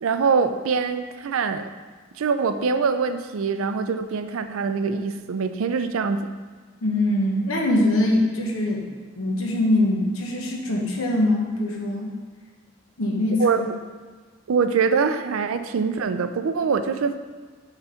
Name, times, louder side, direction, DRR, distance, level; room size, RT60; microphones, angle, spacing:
voice 1, 0.0-1.7 2.2-6.2 13.4-13.6 14.5-17.2, right 5 dB, 80° right, 9 dB, 0.4 m, -23 dB
voice 2, 6.8-8.8 9.2-12.1 13.0-13.6, left 1 dB, 85° left, 0 dB, 1.1 m, -23 dB
5.6 x 3.9 x 5.6 m, 1.4 s
head